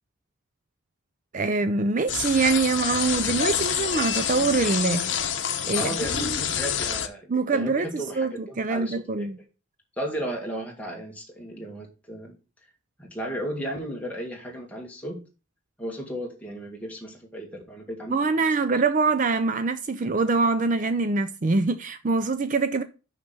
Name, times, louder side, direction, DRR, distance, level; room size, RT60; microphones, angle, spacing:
voice 1, 1.3-5.3 5.7-6.4 7.3-8.3 8.6-9.4 18.1-22.8, right 4 dB, 40° right, 0.5 m, -24 dB
sound 1, 2.1-7.1, left 8 dB, 60° left, 0.9 m, -27 dB
voice 2, 5.7-9.3 10.0-12.3 13.0-15.2 15.8-18.2, right 1 dB, 10° left, 2.0 m, -34 dB
6.1 x 5.8 x 5.9 m
head